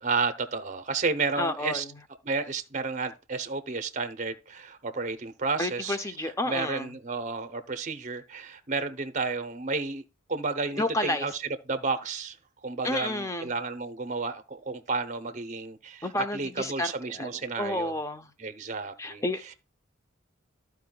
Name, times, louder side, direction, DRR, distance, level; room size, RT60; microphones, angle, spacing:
voice 1, 0.0-1.8 2.2-6.0 6.4-10.0 10.3-11.4 11.7-12.4 12.6-16.1 16.3-17.9 18.4-19.2, right 4 dB, 35° right, 0.7 m, -31 dB
voice 2, 1.4-1.9 5.6-6.9 10.8-11.3 12.8-13.5 16.0-17.3 17.6-18.3 19.0-19.4, left 1 dB, 15° left, 0.6 m, -30 dB
14.0 x 4.7 x 2.3 m
head